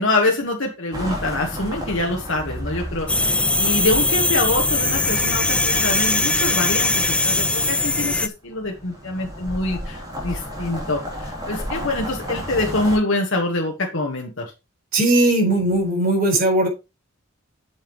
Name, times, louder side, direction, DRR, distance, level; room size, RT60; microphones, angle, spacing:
voice 1, 0.0-14.5, left 2 dB, 65° left, 1 dB, 1.5 m, -25 dB
sound 1, 0.9-7.4 8.5-13.0, equal, 20° right, 3.6 m, -33 dB
sound 2, 3.1-8.3, left 2 dB, 5° left, 0.4 m, -20 dB
voice 2, 14.9-16.7, right 1 dB, 45° right, 1 dB, 4.4 m, -18 dB
8.7 x 7.2 x 3.1 m, 0.27 s
head